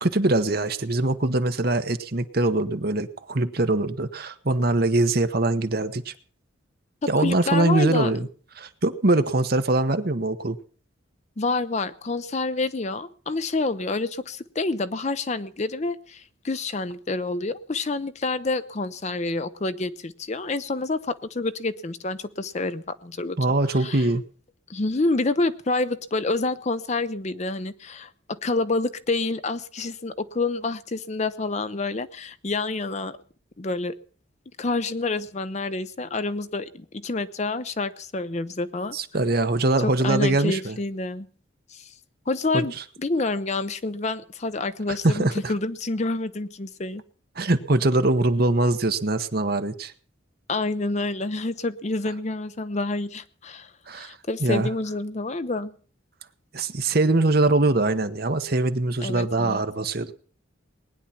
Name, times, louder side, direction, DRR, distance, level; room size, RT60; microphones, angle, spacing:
voice 1, 0.0-6.1 7.1-8.3 8.6-10.6 23.4-24.2 38.9-40.8 42.5-42.7 45.0-45.5 47.4-49.9 53.9-54.1 54.4-54.7 56.5-60.1, right 2 dB, 50° right, 1.1 m, -23 dB
voice 2, 7.0-8.1 11.4-23.4 23.7-24.0 24.7-33.2 33.6-33.9 34.6-39.0 39.8-41.3 41.7-41.9 42.3-47.0 50.5-55.7 59.0-59.6, left 3 dB, 35° left, 0.6 m, -28 dB
19.5 x 9.9 x 5.8 m
head